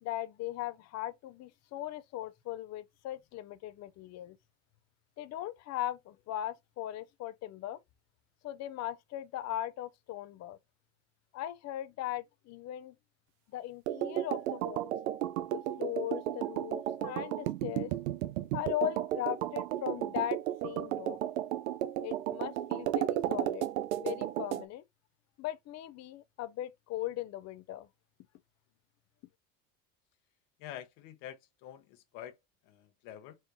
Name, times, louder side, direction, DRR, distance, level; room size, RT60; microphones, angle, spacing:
voice 1, 0.0-4.4 5.2-7.8 8.4-10.6 11.3-13.0 13.5-14.9 15.5-17.9 18.5-21.2 22.0-23.7 24.0-24.8 25.4-27.9, left 13 dB, 40° left, 0.6 m, -38 dB
sound 1, 13.9-24.7, right 13 dB, 80° right, 0.7 m, -34 dB
voice 2, 30.6-32.4 32.6-33.4, left 11 dB, 65° left, 1.2 m, -47 dB
4.5 x 3.3 x 2.7 m
hypercardioid pair, 85°, 40 cm